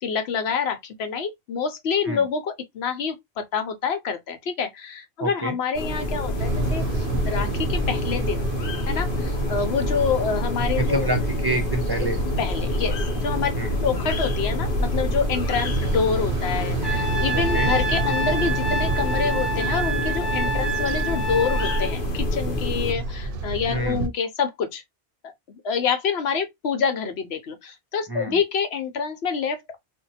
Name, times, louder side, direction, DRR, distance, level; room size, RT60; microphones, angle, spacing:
voice 1, 0.0-8.4 8.9-11.1 12.4-13.5 13.8-24.8 25.2-29.8, left 6 dB, 75° left, 0.9 m, -27 dB
voice 2, 5.2-5.5 10.8-12.2 13.6-13.8 17.3-17.7 23.7-24.0 28.1-28.4, right 1 dB, 30° right, 0.5 m, -27 dB
sound 1, 5.7-22.9, left 1 dB, 60° left, 0.9 m, -28 dB
sound 2, 6.4-24.1, right 3 dB, 65° right, 0.7 m, -29 dB
Trumpet, 16.8-21.9, right 2 dB, ahead, 0.8 m, -28 dB
2.7 x 2.2 x 4.0 m
omnidirectional pair, 1.1 m